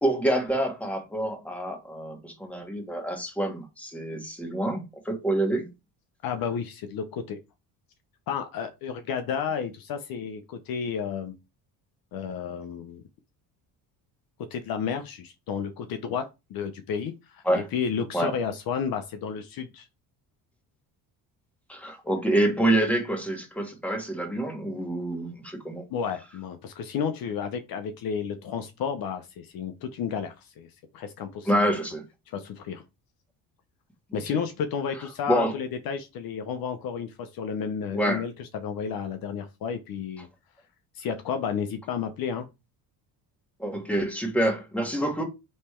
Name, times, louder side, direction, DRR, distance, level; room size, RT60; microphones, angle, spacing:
voice 1, 0.0-5.7 17.4-17.7 18.1-18.3 21.7-25.8 31.4-32.0 34.1-34.4 35.3-35.6 37.9-38.2 43.6-45.2, right 1 dB, 5° left, 1.5 m, -27 dB
voice 2, 6.2-7.4 8.3-11.3 12.1-13.0 14.5-19.9 25.7-30.7 30.9-31.5 32.3-32.8 34.1-40.3 40.9-42.5, left 7 dB, 60° left, 0.7 m, -32 dB
3.3 x 3.2 x 4.3 m
cardioid pair, 105°, 40 cm